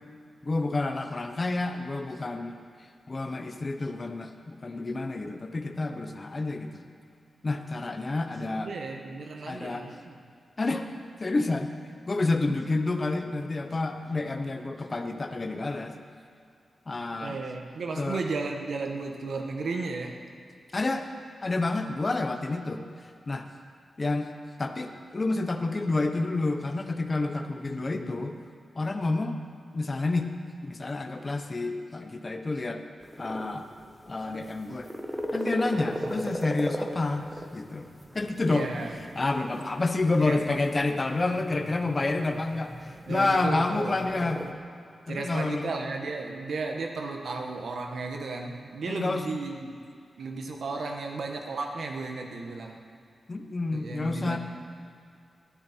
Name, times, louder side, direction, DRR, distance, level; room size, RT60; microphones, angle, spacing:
voice 1, 0.4-2.6 3.1-6.8 7.4-8.7 9.5-9.8 10.6-10.9 11.2-11.7 12.1-15.9 16.9-17.4 18.0-18.2 20.7-21.1 21.4-22.8 23.3-23.5 24.0-24.3 24.6-28.3 28.7-29.4 29.7-30.3 30.6-32.8 33.2-33.6 34.1-34.9 35.3-37.3 37.5-37.9 38.1-38.7 39.1-44.4 45.1-45.7 48.9-49.2 53.3-54.4, left 2 dB, 35° left, 6 dB, 1.0 m, -29 dB
voice 2, 8.5-10.2 17.2-20.2 27.5-28.3 35.9-36.2 38.5-39.2 40.2-40.6 43.1-44.0 45.1-49.7 50.2-52.8 53.7-54.4, right 3 dB, 75° right, 2 dB, 1.6 m, -34 dB
sound 1, 33.0-44.5, equal, 5° right, 1.3 m, -38 dB
20.0 x 11.5 x 4.6 m, 2.4 s
wide cardioid pair, 105°, 0 cm